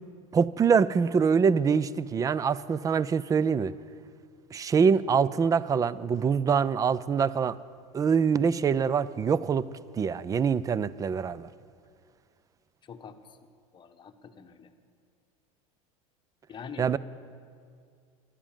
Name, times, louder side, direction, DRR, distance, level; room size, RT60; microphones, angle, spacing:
voice 1, 0.3-3.7 4.5-7.6 7.9-9.7 9.9-11.5 16.8-17.0, right 6 dB, 20° right, 19 dB, 0.4 m, -24 dB
voice 2, 12.9-13.2 13.7-14.7 16.5-17.0, left 6 dB, 25° left, 6 dB, 1.1 m, -44 dB
13.0 x 11.5 x 7.3 m, 2.2 s
supercardioid pair, 105°, 18 cm